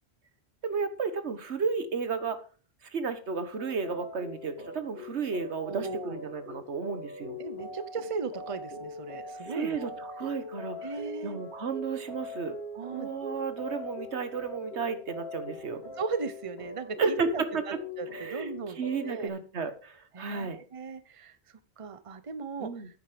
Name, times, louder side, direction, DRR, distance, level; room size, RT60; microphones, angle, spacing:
voice 1, 0.6-2.4 2.8-7.4 9.4-10.9 11.2-12.6 12.9-15.8 17.0-17.6 18.1-20.6 22.6-22.9, right 5 dB, 85° right, 10 dB, 1.6 m, -33 dB
sound 1, 3.6-19.3, left 2 dB, 70° left, 2.9 m, -42 dB
voice 2, 5.6-6.1 7.4-9.9 10.8-11.4 12.7-13.1 16.0-19.3 20.1-22.7, right 5 dB, 35° right, 13 dB, 0.8 m, -37 dB
9.6 x 9.2 x 5.1 m, 0.37 s
omnidirectional pair, 1.1 m